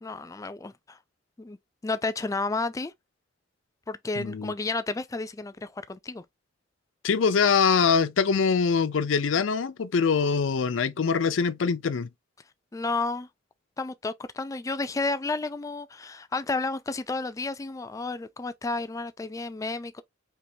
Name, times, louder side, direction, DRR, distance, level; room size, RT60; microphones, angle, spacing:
voice 1, 0.0-1.0 1.4-1.6 1.8-2.9 3.9-6.2 12.7-13.3 13.8-20.0, left 3 dB, 15° left, 0.3 m, -31 dB
voice 2, 4.2-4.5 7.0-12.1, left 5 dB, 80° left, 0.5 m, -23 dB
4.5 x 2.9 x 2.7 m
head